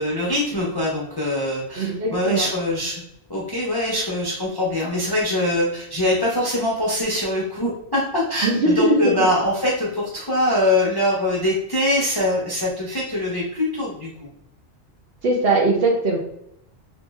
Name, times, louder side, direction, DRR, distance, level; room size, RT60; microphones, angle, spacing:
voice 1, 0.0-3.0 3.3-14.1, left 1 dB, 30° left, -5 dB, 0.4 m, -23 dB
voice 2, 1.8-2.5 8.4-9.2 15.2-16.2, right 2 dB, 60° right, 0 dB, 0.8 m, -20 dB
3.0 x 2.6 x 2.2 m, 0.78 s
omnidirectional pair, 1.2 m